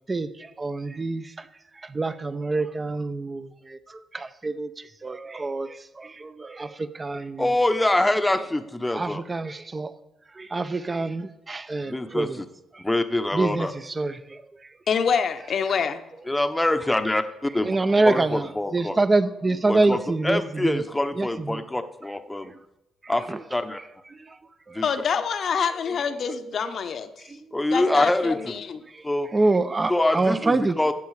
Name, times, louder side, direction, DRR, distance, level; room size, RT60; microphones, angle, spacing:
voice 1, 0.1-1.5 1.8-7.5 8.9-9.9 10.3-12.4 12.7-12.8 13.3-14.4 17.6-20.8 21.1-21.6 22.4-22.6 23.0-23.4 24.1-24.4 24.7-24.8 26.3-26.7 27.2-27.6 27.9-28.1 28.8-29.0 29.3-30.8, right 3 dB, 25° right, 13 dB, 0.8 m, -26 dB
voice 2, 7.4-9.2 11.9-12.4 12.8-13.7 16.3-17.8 18.0-19.0 19.7-20.0 20.2-22.5 23.1-23.2 23.5-23.8 24.7-24.9 27.5-28.6 29.0-29.3 29.9-30.9, left 1 dB, 10° left, 9 dB, 0.9 m, -25 dB
voice 3, 14.9-16.0 24.8-27.1 27.7-28.8, left 6 dB, 55° left, 9 dB, 1.0 m, -26 dB
14.0 x 8.0 x 4.9 m, 0.95 s
cardioid pair, 90°, 0 cm